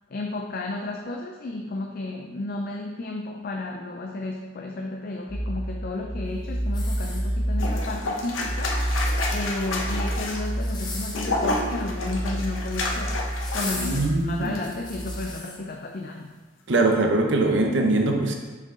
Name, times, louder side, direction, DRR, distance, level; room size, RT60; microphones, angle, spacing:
voice 1, 0.1-13.2 13.5-16.3, left 2 dB, 45° left, 2 dB, 0.4 m, -33 dB
sound 1, 5.3-15.3, equal, 20° right, 1.4 m, -30 dB
sound 2, 6.7-7.7 8.8-9.6 10.5-11.4 12.4-12.9 13.4-15.6 16.2-16.3, left 3 dB, 20° left, 0.7 m, -38 dB
sound 3, 7.6-14.1 14.4-14.6, left 2 dB, 85° left, 0.8 m, -30 dB
voice 2, 13.8-14.6 16.7-18.3, right 2 dB, 65° right, 2 dB, 0.8 m, -22 dB
5.9 x 4.4 x 3.8 m, 1.3 s
head